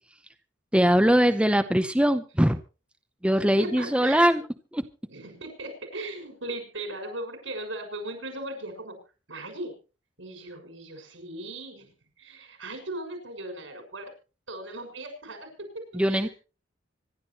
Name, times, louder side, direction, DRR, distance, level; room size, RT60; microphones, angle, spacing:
voice 1, 0.7-2.6 3.2-4.4 4.7-4.8 15.9-16.3, equal, 5° right, 8 dB, 0.8 m, -21 dB
voice 2, 3.3-4.3 5.1-9.0 9.3-9.7 10.2-14.1 14.5-15.5 15.7-16.3, right 2 dB, 80° right, 5 dB, 6.4 m, -38 dB
25.5 x 11.5 x 3.0 m, 0.34 s
head